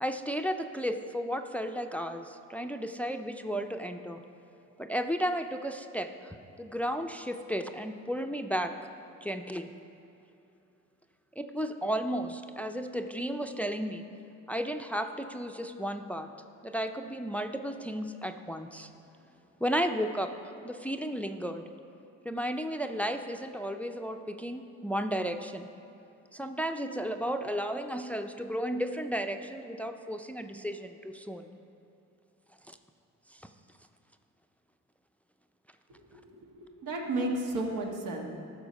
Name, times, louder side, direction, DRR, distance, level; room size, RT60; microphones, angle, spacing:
voice 1, 0.0-4.2 4.8-8.7 9.2-9.7 11.4-14.0 14.5-16.3 16.6-18.9 19.6-21.6 22.2-25.7 26.3-31.5 32.7-32.8 33.3-33.5, equal, 5° left, 7 dB, 0.4 m, -33 dB
voice 2, 36.4-38.3, right 2 dB, 85° right, 0 dB, 1.6 m, -33 dB
14.0 x 6.1 x 5.3 m, 2.9 s
cardioid pair, 90°, 30 cm